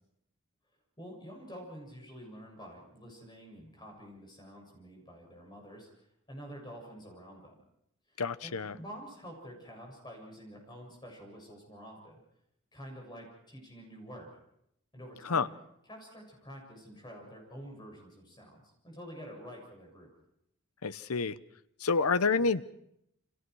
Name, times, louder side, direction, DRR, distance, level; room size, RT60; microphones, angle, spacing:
voice 1, 1.0-7.6 8.1-12.2 12.7-14.3 14.9-15.5 15.9-20.1, equal, 20° left, 7.2 m, -48 dB
voice 2, 8.2-8.7 15.3-15.5 20.8-21.4 21.8-22.6, left 4 dB, 85° left, 0.9 m, -28 dB
29.0 x 26.5 x 4.8 m
head